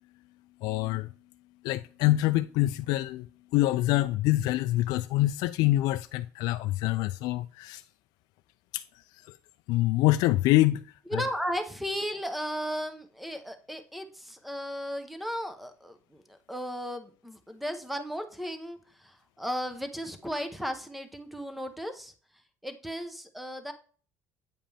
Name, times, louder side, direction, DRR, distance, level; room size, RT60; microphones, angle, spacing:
voice 1, 0.6-1.1 1.6-3.3 3.5-7.8 8.7-8.8 9.7-10.8 11.1-11.2, left 17 dB, 75° left, 0.3 m, -25 dB
voice 2, 11.1-22.1 22.6-23.7, equal, ahead, 0.8 m, -35 dB
8.7 x 5.1 x 3.4 m
cardioid pair, 160°, 7 cm